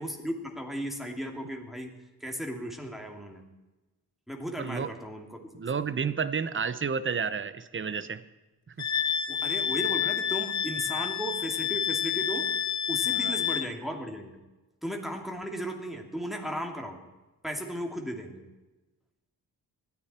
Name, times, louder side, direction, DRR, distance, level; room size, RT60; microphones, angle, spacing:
voice 1, 0.0-1.9 2.2-3.4 4.3-5.5 9.3-12.5 12.9-14.4 14.8-17.0 17.4-18.4, equal, ahead, 1 dB, 2.8 m, -36 dB
voice 2, 4.6-4.9 5.5-8.2 8.7-8.9 11.0-11.1 13.1-13.4, right 6 dB, 30° right, 14 dB, 0.9 m, -31 dB
Wind instrument woodwind instrument, 8.8-13.7, left 9 dB, 45° left, 0.9 m, -29 dB
20.0 x 13.5 x 4.4 m, 1.1 s
cardioid pair, 100°, 38 cm